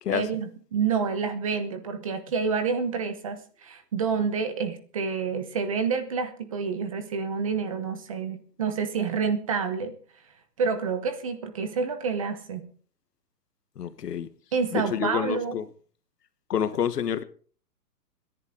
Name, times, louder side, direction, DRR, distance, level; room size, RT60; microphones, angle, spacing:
voice 1, 0.1-9.9 10.6-12.7 14.5-15.6, right 5 dB, 20° right, 0.9 m, -28 dB
voice 2, 13.8-14.3 14.7-15.7 16.5-17.2, left 9 dB, 70° left, 1.4 m, -28 dB
26.0 x 10.5 x 3.7 m
hypercardioid pair, 175°, 50 cm